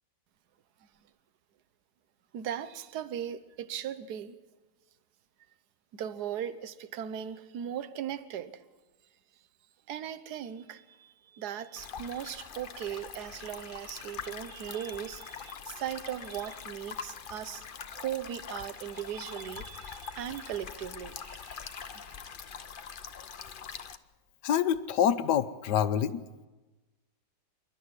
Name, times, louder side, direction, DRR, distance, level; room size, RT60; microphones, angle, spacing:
voice 1, 2.3-4.4 5.9-8.6 9.9-22.2, right 10 dB, 65° right, 1.5 m, -38 dB
sound 1, 11.7-24.0, left 6 dB, 50° left, 0.6 m, -44 dB
voice 2, 24.4-26.2, left 9 dB, 75° left, 1.4 m, -26 dB
27.5 x 11.5 x 9.7 m
omnidirectional pair, 1.9 m